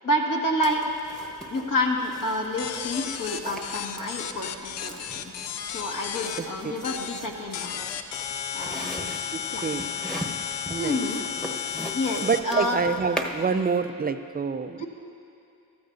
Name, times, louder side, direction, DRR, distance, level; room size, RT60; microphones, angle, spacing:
voice 1, 0.0-0.8 1.5-5.3 5.7-7.8 8.5-9.1 9.5-9.6 10.8-11.2 11.9-12.8 14.8-14.9, left 1 dB, 50° left, -1 dB, 1.7 m, -28 dB
sound 1, 0.6-13.6, right 1 dB, ahead, 1.1 m, -40 dB
sound 2, 2.6-6.4 6.8-7.2 7.5-12.4, left 8 dB, 90° left, 0.6 m, -33 dB
voice 2, 6.4-6.8 9.3-9.9 10.7-11.0 12.2-14.8, right 5 dB, 25° right, 10 dB, 0.5 m, -27 dB
14.5 x 13.0 x 2.6 m, 2.6 s
supercardioid pair, 50°, 41 cm